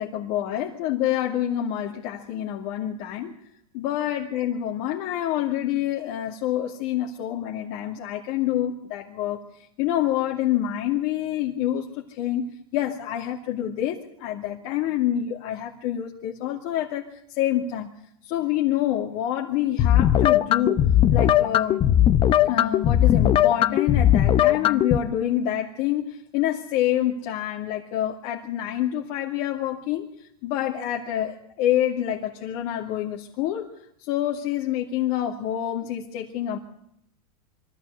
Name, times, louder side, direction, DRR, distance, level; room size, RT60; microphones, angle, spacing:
voice 1, 0.0-3.3 3.7-9.4 9.8-17.9 18.2-20.8 21.1-21.9 22.5-30.1 30.4-33.7 34.0-36.6, left 11 dB, 50° left, 0 dB, 2.4 m, -27 dB
sound 1, 19.8-25.0, left 11 dB, 25° left, 0.8 m, -19 dB
23.5 x 14.0 x 8.2 m, 0.72 s
supercardioid pair, 135°, 20 cm